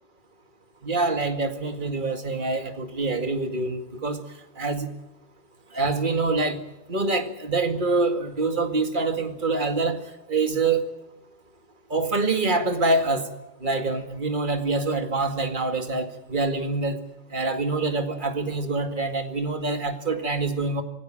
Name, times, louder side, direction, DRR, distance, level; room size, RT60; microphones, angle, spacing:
voice 1, 0.8-4.2 4.6-4.9 5.7-6.6 6.9-10.0 10.3-10.8 11.9-13.3 13.6-17.0 17.3-20.8, right 3 dB, 35° right, 6 dB, 2.2 m, -25 dB
25.5 x 17.5 x 7.6 m, 0.98 s
omnidirectional pair, 1.5 m